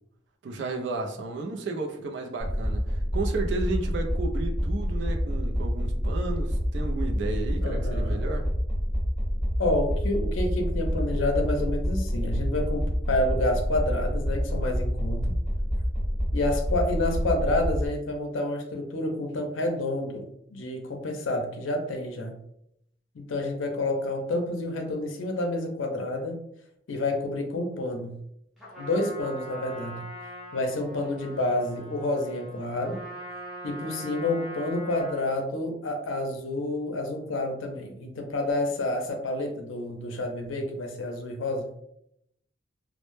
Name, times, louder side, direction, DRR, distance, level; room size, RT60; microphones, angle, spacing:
voice 1, 0.4-8.5, right 3 dB, 65° right, 3 dB, 0.4 m, -33 dB
sound 1, 2.4-17.9, equal, 20° left, 0.9 m, -27 dB
voice 2, 7.6-8.2 9.6-15.3 16.3-22.4 23.1-26.4 26.9-28.2 28.8-30.1 30.5-33.0 33.6-41.7, left 2 dB, 80° left, 3 dB, 0.5 m, -29 dB
Trumpet, 28.6-35.4, equal, ahead, 0.5 m, -42 dB
2.0 x 2.0 x 3.0 m, 0.77 s
head